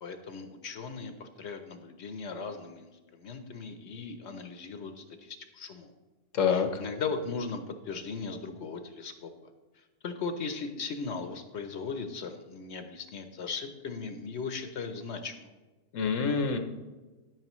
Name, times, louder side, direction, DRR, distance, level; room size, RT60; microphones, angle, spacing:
voice 1, 0.0-5.9 6.4-9.5 9.8-15.5, left 4 dB, 65° left, 7 dB, 1.0 m, -38 dB
voice 2, 6.4-6.8 15.9-16.6, left 6 dB, 85° left, 7 dB, 1.2 m, -26 dB
11.0 x 8.9 x 3.0 m, 1.2 s
omnidirectional pair, 1.3 m